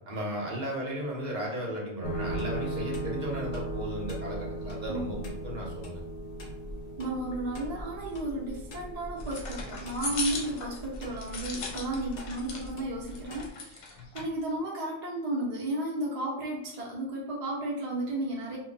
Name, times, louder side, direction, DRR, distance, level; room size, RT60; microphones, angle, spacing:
voice 1, 0.1-6.0, equal, 45° right, -3 dB, 0.7 m, -35 dB
sound 1, 2.0-13.5, right 1 dB, 55° left, 0.5 m, -38 dB
voice 2, 4.9-5.2 7.0-18.6, right 1 dB, 65° right, -4 dB, 0.4 m, -33 dB
sound 2, 9.2-12.7 13.1-14.3, left 3 dB, 85° left, 1.1 m, -38 dB
2.2 x 2.0 x 3.7 m, 0.77 s
omnidirectional pair, 1.4 m